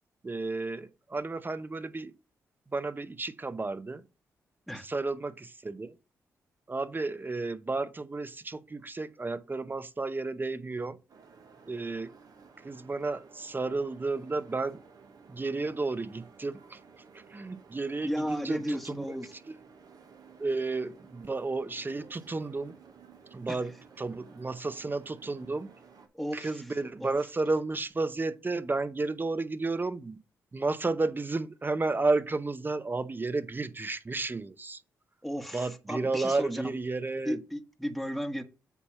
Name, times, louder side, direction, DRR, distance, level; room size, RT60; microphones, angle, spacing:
voice 1, 0.2-2.1 2.7-4.0 4.8-5.9 6.7-11.0 11.7-12.1 12.6-14.8 15.3-16.8 17.3-19.1 20.4-22.7 23.3-25.7 26.3-30.2 30.5-34.8 35.5-37.4, right 3 dB, 30° right, 0.7 m, -32 dB
sound 1, 11.1-26.1, right 5 dB, 60° right, 1.2 m, -55 dB
voice 2, 18.0-19.3 23.5-23.6 26.1-26.7 27.0-27.2 35.2-36.7 37.2-38.4, equal, ahead, 1.1 m, -34 dB
8.2 x 2.8 x 5.6 m
supercardioid pair, 45°, 7 cm